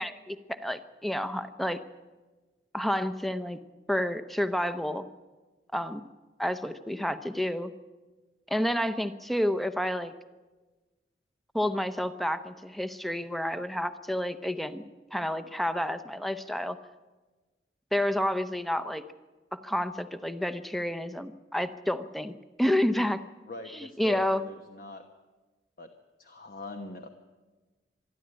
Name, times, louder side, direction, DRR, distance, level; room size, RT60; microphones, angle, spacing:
voice 1, 0.0-1.8 2.7-3.6 3.9-5.1 5.7-6.0 6.4-7.7 8.5-10.1 11.5-14.8 15.1-16.8 17.9-19.0 19.5-22.3 22.6-23.2 23.7-24.4, left 1 dB, ahead, 11 dB, 0.8 m, -29 dB
voice 2, 23.5-25.0 25.8-25.9 26.2-27.1, left 2 dB, 55° left, 5 dB, 1.1 m, -42 dB
25.0 x 11.5 x 9.9 m, 1.3 s
head